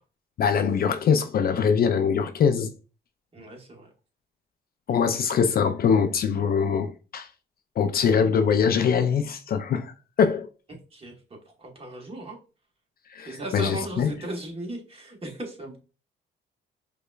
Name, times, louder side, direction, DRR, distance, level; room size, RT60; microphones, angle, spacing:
voice 1, 0.4-2.7 4.9-7.3 7.8-9.9 10.2-10.5 13.1-14.1, left 6 dB, 50° left, 0.4 m, -23 dB
voice 2, 3.3-3.9 10.7-11.2 11.5-12.4 13.2-15.8, right 1 dB, 30° right, 1.1 m, -37 dB
5.0 x 2.2 x 2.3 m
cardioid pair, 90°, 20 cm